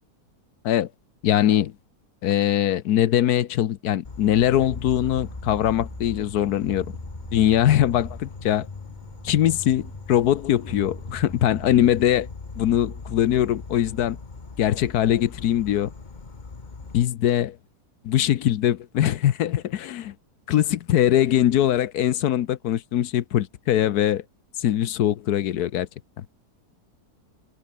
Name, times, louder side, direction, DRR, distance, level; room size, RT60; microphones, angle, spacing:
voice 1, 1.2-1.7 2.2-6.9 7.3-8.7 9.2-12.3 12.6-14.2 14.6-15.9 16.9-17.5 18.0-20.1 20.5-24.2 24.6-25.9 26.2-26.3, left 11 dB, 80° left, 1.3 m, -22 dB
Insect, 4.0-17.0, left 4 dB, 30° left, 1.6 m, -40 dB
sound 1, 4.7-12.2, left 1 dB, 10° left, 1.8 m, -40 dB
omnidirectional pair, 1.7 m